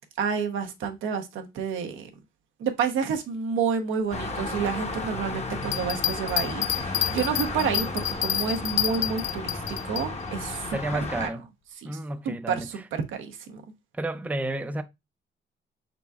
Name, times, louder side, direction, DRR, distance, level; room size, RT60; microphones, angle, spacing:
voice 1, 0.2-2.1 2.6-10.8 11.2-11.3 11.8-12.0 12.2-13.6, right 6 dB, 85° right, 0.8 m, -29 dB
sound 1, 4.1-11.3, left 2 dB, 35° left, 0.9 m, -33 dB
Bell, 5.6-10.0 10.5-10.6, left 12 dB, 80° left, 0.5 m, -28 dB
voice 2, 10.7-11.4 11.8-12.9 13.9-14.8, right 1 dB, 5° right, 0.4 m, -31 dB
4.5 x 3.9 x 2.3 m
cardioid pair, 90°, 20 cm